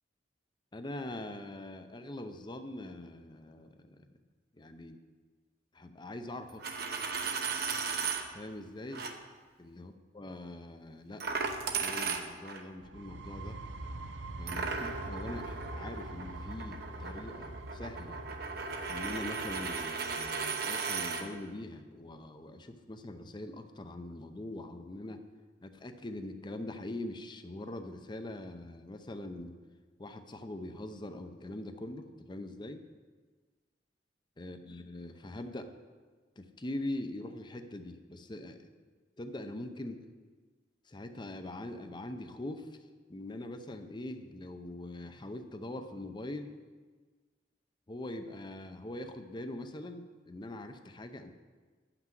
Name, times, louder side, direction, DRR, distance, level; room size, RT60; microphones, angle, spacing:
voice 1, 0.7-4.2 4.5-5.0 5.7-6.6 8.3-9.1 9.6-11.3 11.8-13.6 14.4-18.2 18.9-25.2 25.6-29.5 30.0-32.8 34.4-35.7 36.4-38.7 39.2-40.0 40.9-42.8 43.1-46.6 47.9-51.3, left 1 dB, 25° left, 7 dB, 0.6 m, -42 dB
Coin (dropping), 6.5-8.2 8.9-9.1 11.2-12.6 14.5-21.2, right 5 dB, 60° right, 0.9 m, -36 dB
sound 1, 12.8-20.4, right 2 dB, 85° right, 0.7 m, -44 dB
9.2 x 6.0 x 7.5 m, 1.4 s
head